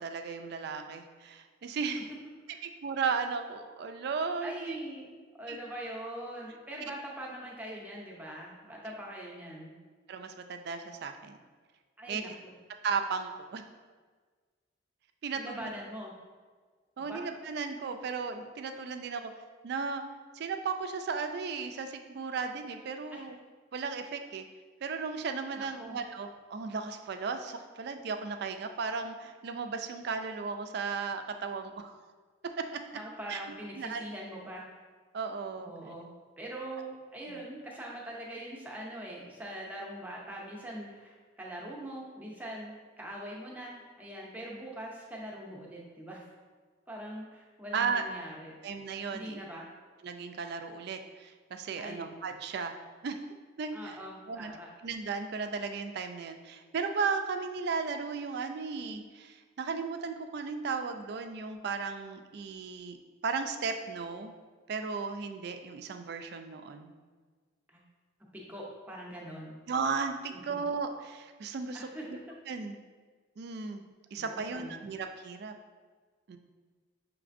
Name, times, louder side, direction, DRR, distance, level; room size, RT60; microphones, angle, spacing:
voice 1, 0.0-2.1 2.6-4.8 5.5-5.6 10.1-11.3 12.1-12.2 12.8-13.6 15.2-15.6 17.0-19.3 19.6-20.0 20.3-23.4 23.7-24.5 24.8-31.9 32.6-32.8 33.3-33.4 33.8-34.0 35.1-35.7 37.3-37.4 47.7-48.0 48.6-49.4 50.0-52.8 53.0-53.2 53.6-54.0 54.3-54.5 54.8-63.0 63.2-64.3 64.7-66.9 69.7-72.2 72.5-72.9 73.4-73.8 74.1-75.6 76.3-76.4, right 5 dB, 55° right, 6 dB, 0.3 m, -35 dB
voice 2, 4.4-9.7 12.0-12.5 15.4-16.1 17.0-17.3 23.1-23.2 25.6-26.0 32.9-34.6 35.6-36.1 36.4-46.3 46.9-48.6 49.1-49.6 51.8-52.1 53.7-54.7 67.7-67.8 68.3-69.5 70.3-70.6 71.7-72.0 74.1-74.8, right 1 dB, 10° right, -3 dB, 0.6 m, -42 dB
5.9 x 3.2 x 2.5 m, 1.5 s
head